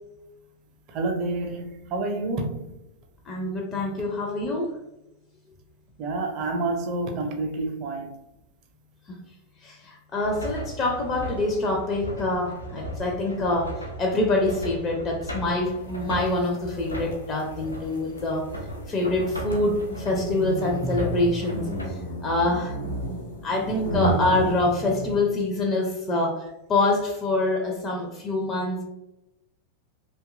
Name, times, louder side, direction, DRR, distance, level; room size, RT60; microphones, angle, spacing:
voice 1, 0.9-2.7 6.0-8.2, right 2 dB, 40° right, 0.5 m, -28 dB
voice 2, 3.3-4.8 9.6-18.5 18.9-21.7 22.2-22.7 23.4-28.8, left 2 dB, 30° left, 0.4 m, -25 dB
sound 1, 10.2-21.9, equal, 85° left, 0.4 m, -37 dB
sound 2, 16.1-25.4, right 1 dB, 65° left, 0.9 m, -32 dB
2.7 x 2.2 x 2.4 m
figure-of-eight pair, 90°, 0 cm